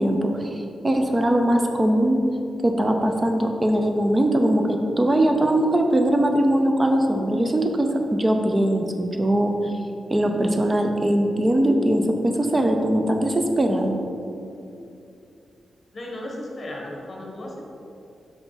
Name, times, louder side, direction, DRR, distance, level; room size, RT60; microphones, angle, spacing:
voice 1, 0.0-2.2 2.6-9.7 10.1-14.0, right 1 dB, 20° right, 4 dB, 0.5 m, -21 dB
voice 2, 15.9-17.6, left 1 dB, 25° left, -2 dB, 1.3 m, -35 dB
5.8 x 5.7 x 4.1 m, 2.7 s
wide cardioid pair, 150°, 0 cm